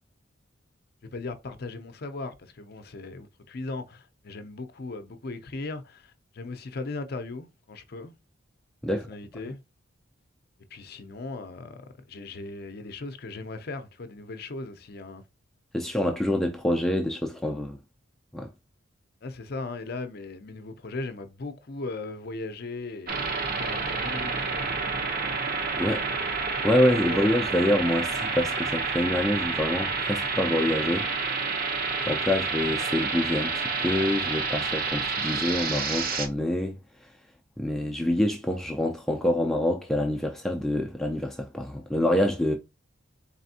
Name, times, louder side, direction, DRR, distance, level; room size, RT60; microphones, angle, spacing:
voice 1, 1.1-8.1 8.9-9.6 10.7-15.2 19.2-24.7 26.1-26.3 27.1-27.2, left 3 dB, 50° left, 0.6 m, -38 dB
voice 2, 15.7-17.8 18.3-18.5 25.8-26.0 26.6-31.1 32.1-36.8 37.6-42.5, left 1 dB, ahead, 0.4 m, -26 dB
sound 1, 23.1-36.3, right 4 dB, 45° right, 0.8 m, -29 dB
4.2 x 3.3 x 2.7 m
head